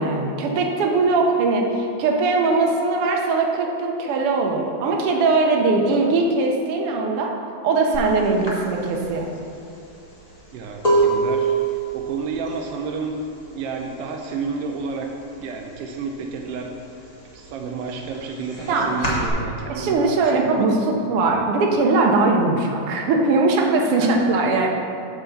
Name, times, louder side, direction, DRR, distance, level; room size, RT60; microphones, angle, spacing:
voice 1, 0.0-7.3 7.6-9.3 18.7-19.1 19.7-24.7, right 3 dB, 65° right, 1 dB, 1.5 m, -20 dB
sound 1, 7.9-8.1 8.4-14.1 14.4-14.9 15.2-16.3 16.7-19.3, right 3 dB, 25° left, 0.9 m, -25 dB
voice 2, 10.5-13.2 13.5-15.1 15.4-16.8 17.1-20.9 23.9-24.3, right 5 dB, 85° right, 2 dB, 1.3 m, -31 dB
9.0 x 3.8 x 7.0 m, 2.5 s
omnidirectional pair, 3.4 m